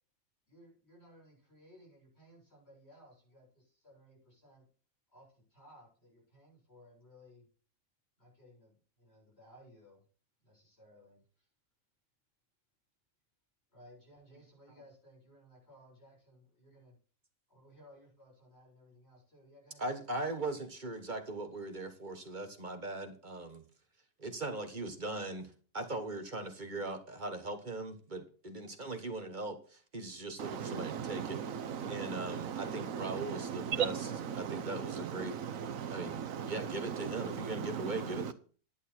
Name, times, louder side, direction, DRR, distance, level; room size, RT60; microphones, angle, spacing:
voice 1, 0.5-4.7 5.1-7.5 8.2-10.0 10.4-11.5 13.7-17.0 17.5-20.2 21.2-21.3, equal, 50° left, -3 dB, 7.9 m, -60 dB
voice 2, 19.8-23.6 24.2-31.4 31.9-33.9 34.3-35.4 35.9-38.3, right 2 dB, 35° right, 6 dB, 1.5 m, -40 dB
voice 3, 30.4-38.3, right 8 dB, 85° right, 11 dB, 1.3 m, -38 dB
11.0 x 9.3 x 4.4 m, 0.40 s
omnidirectional pair, 1.4 m